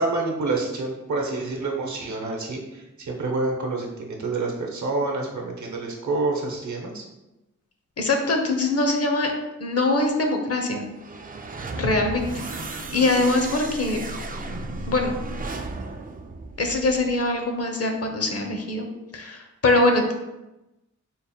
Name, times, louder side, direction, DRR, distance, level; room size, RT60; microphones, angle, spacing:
voice 1, 0.0-7.0, right 3 dB, 70° right, 1 dB, 0.8 m, -28 dB
voice 2, 8.0-9.3 9.6-10.9 11.7-12.3 12.6-14.1 14.9-15.2 16.6-18.9 19.1-20.1, left 2 dB, 50° left, 3 dB, 0.7 m, -23 dB
sound 1, 10.9-17.2, right 2 dB, 30° right, 0.4 m, -34 dB
3.9 x 2.1 x 4.2 m, 0.98 s
wide cardioid pair, 60°, 31 cm